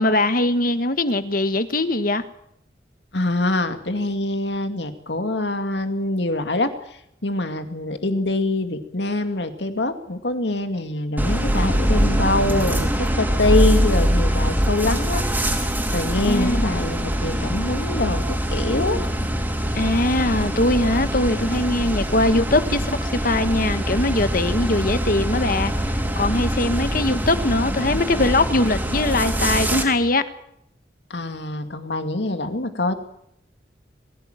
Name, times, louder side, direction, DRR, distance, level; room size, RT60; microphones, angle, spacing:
voice 1, 0.0-2.2 16.3-16.7 19.7-30.2, left 2 dB, 50° left, 1.5 m, -21 dB
voice 2, 3.1-15.2 15.9-19.3 31.1-32.9, left 2 dB, 75° left, 2.3 m, -24 dB
sound 1, 11.2-29.8, equal, 10° right, 3.8 m, -23 dB
22.5 x 16.0 x 9.1 m
head